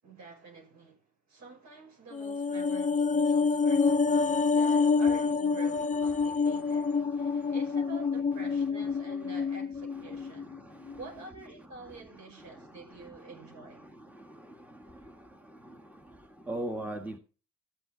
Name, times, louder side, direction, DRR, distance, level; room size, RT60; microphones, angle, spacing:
voice 1, 0.0-10.5 11.0-13.9, right 4 dB, 65° right, 5.7 m, -48 dB
sound 1, 2.1-10.6 10.9-11.0, left 4 dB, 25° left, 0.6 m, -27 dB
voice 2, 3.8-5.0 5.6-7.8 8.5-8.6 8.8-9.4 9.9-11.0 11.6-17.2, right 1 dB, 5° right, 1.6 m, -45 dB
14.0 x 7.6 x 3.9 m
cardioid pair, 90°, 30 cm